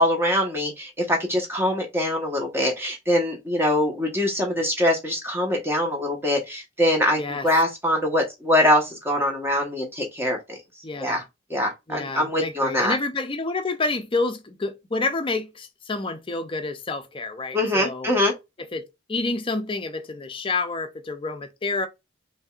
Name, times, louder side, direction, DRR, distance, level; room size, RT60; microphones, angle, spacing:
voice 1, 0.0-10.6 11.0-11.2 11.5-12.9 17.5-18.3, left 1 dB, 10° right, 1.3 m, -23 dB
voice 2, 7.2-7.5 10.8-11.2 11.9-18.1 18.6-18.8 19.1-21.9, left 3 dB, 25° left, 0.6 m, -28 dB
5.1 x 2.7 x 2.5 m
head